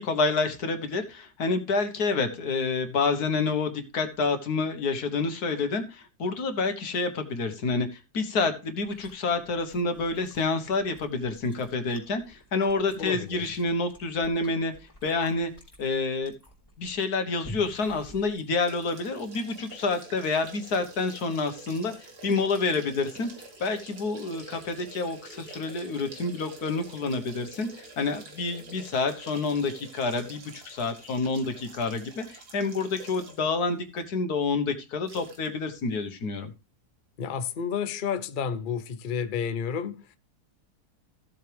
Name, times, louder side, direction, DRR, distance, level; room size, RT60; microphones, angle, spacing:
voice 1, 0.0-14.7 15.0-15.5 15.8-16.3 16.8-21.9 22.2-23.3 23.6-36.5, left 3 dB, 75° left, 1.8 m, -28 dB
Chewing mastication, 8.8-19.0, equal, 15° left, 4.2 m, -50 dB
voice 2, 13.0-13.5 37.2-40.2, left 7 dB, 45° left, 0.7 m, -31 dB
sound 1, 18.6-33.5 34.0-34.1 35.1-35.5 35.8-35.9, right 3 dB, 90° right, 2.4 m, -47 dB
15.0 x 7.7 x 3.4 m
omnidirectional pair, 1.6 m